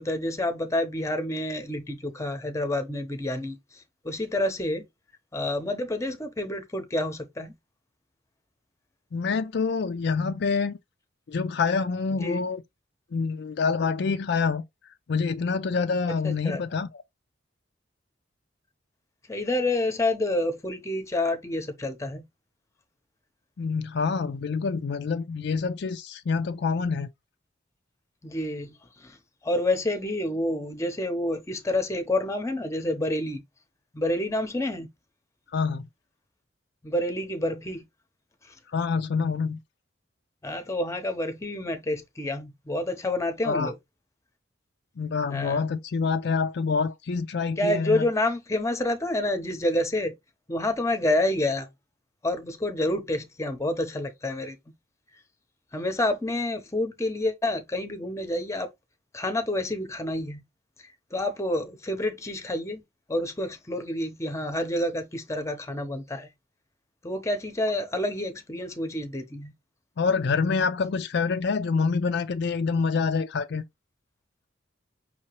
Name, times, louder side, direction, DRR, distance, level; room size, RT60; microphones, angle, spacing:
voice 1, 0.0-4.8 5.3-7.5 12.1-12.4 16.2-16.6 19.3-22.2 28.2-28.7 29.0-29.2 29.4-33.4 33.9-34.9 36.8-37.8 40.4-43.7 45.3-45.7 47.6-50.1 50.5-51.7 52.2-54.6 55.7-58.7 59.1-60.4 61.1-62.8 63.1-66.3 67.0-69.5, left 1 dB, 15° left, 0.8 m, -28 dB
voice 2, 9.1-10.8 11.3-12.6 13.1-14.6 15.1-17.0 23.6-27.1 35.5-35.9 38.7-39.6 43.4-43.7 45.0-48.1 70.0-73.6, left 5 dB, 60° left, 0.4 m, -26 dB
5.5 x 2.8 x 3.0 m
head